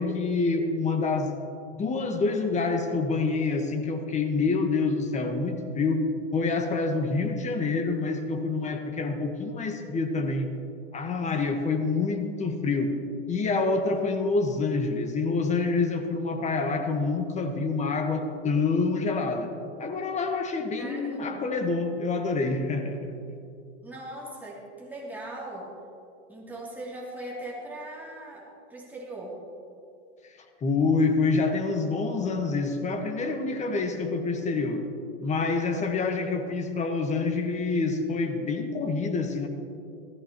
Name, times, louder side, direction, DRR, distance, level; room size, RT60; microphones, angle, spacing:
voice 1, 0.0-1.4 1.7-10.5 10.9-13.0 13.3-23.2 30.2-30.3 30.6-34.9 35.2-39.5, left 3 dB, 20° left, 5 dB, 1.3 m, -27 dB
voice 2, 20.8-21.5 23.8-25.7 26.3-28.4 28.7-29.4, right 1 dB, 5° right, -6 dB, 2.8 m, -39 dB
15.5 x 14.0 x 3.0 m, 2.5 s
hypercardioid pair, 115°, 35 cm